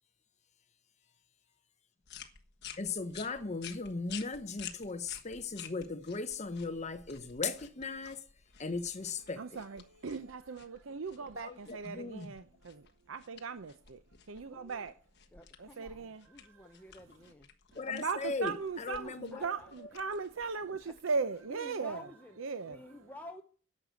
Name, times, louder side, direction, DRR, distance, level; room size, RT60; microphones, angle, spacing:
sound 1, 2.0-21.6, left 9 dB, 55° left, 1.3 m, -52 dB
voice 1, 2.8-8.2 8.6-9.6 11.3-12.3 17.7-19.9, left 4 dB, 35° left, 0.8 m, -38 dB
voice 2, 9.4-14.0 14.3-14.9 15.6-16.5 17.9-22.1 22.4-23.0, right 4 dB, 75° right, 0.6 m, -38 dB
voice 3, 14.3-14.9 15.3-17.5 19.0-19.7 20.1-20.2 20.8-21.0 21.5-22.4 22.6-23.4, left 1 dB, 10° left, 0.9 m, -51 dB
10.5 x 6.7 x 9.0 m
head